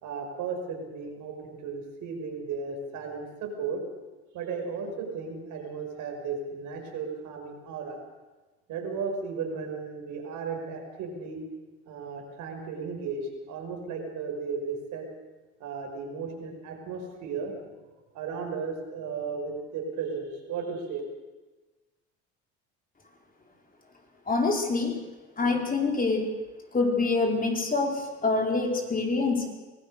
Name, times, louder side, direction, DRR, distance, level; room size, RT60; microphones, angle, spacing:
voice 1, 0.0-3.8 4.3-8.0 8.7-11.5 11.9-15.1 15.6-17.6 18.1-21.0, right 5 dB, 65° right, 2 dB, 5.8 m, -35 dB
voice 2, 24.3-25.0 25.4-26.4 26.7-29.5, left 3 dB, 25° left, 1 dB, 4.5 m, -26 dB
24.0 x 16.5 x 6.6 m, 1.2 s
supercardioid pair, 80°, 33 cm